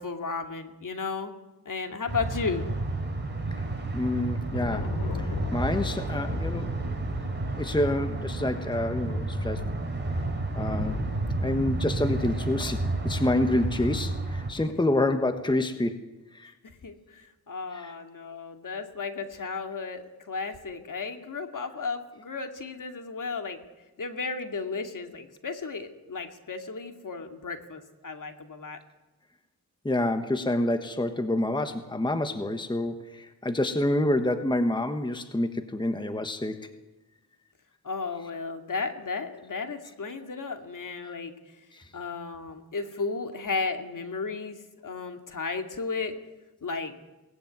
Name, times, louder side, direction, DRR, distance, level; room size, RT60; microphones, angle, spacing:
voice 1, 0.0-1.4 1.7-2.7 16.8-23.6 24.0-28.8 37.8-41.3 41.9-44.6 44.8-46.1 46.6-46.9, left 4 dB, 55° left, 5 dB, 2.4 m, -34 dB
sound 1, 2.1-14.5, right 2 dB, 30° right, 4.4 m, -31 dB
voice 2, 3.9-4.9 5.5-6.7 7.5-9.6 10.5-11.0 11.4-16.0 16.4-16.5 17.8-17.9 29.8-36.6, left 1 dB, 10° left, 8 dB, 1.3 m, -27 dB
Thunder, 4.0-13.4, left 3 dB, 90° left, 2.8 m, -38 dB
22.5 x 19.0 x 9.4 m, 1.1 s
wide cardioid pair, 120°, 37 cm